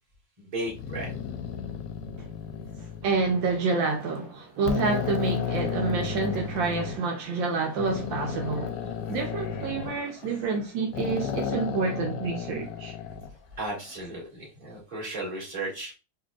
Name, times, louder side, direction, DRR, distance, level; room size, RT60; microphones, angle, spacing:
voice 1, 0.4-1.1 13.6-15.9, right 2 dB, 25° right, 1.9 m, -35 dB
sound 1, 0.7-3.6 4.1-4.2 4.6-7.0 7.8-10.6 10.9-13.3, left 7 dB, 75° left, 1.2 m, -33 dB
voice 2, 3.0-8.7 9.1-12.9, right 4 dB, 75° right, 1.4 m, -28 dB
4.1 x 3.1 x 2.3 m
omnidirectional pair, 2.1 m